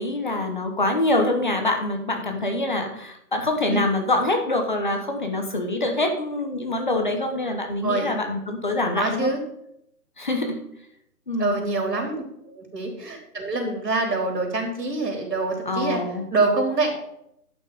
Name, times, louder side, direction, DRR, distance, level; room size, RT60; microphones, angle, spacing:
voice 1, 0.0-9.3 10.2-10.6 11.3-11.6 15.7-16.2, left 2 dB, 30° left, 4 dB, 1.0 m, -25 dB
voice 2, 9.0-9.4 11.4-16.0 16.3-16.9, right 3 dB, 75° right, 2 dB, 3.8 m, -25 dB
11.0 x 6.0 x 5.1 m, 0.76 s
hypercardioid pair, 175°, 48 cm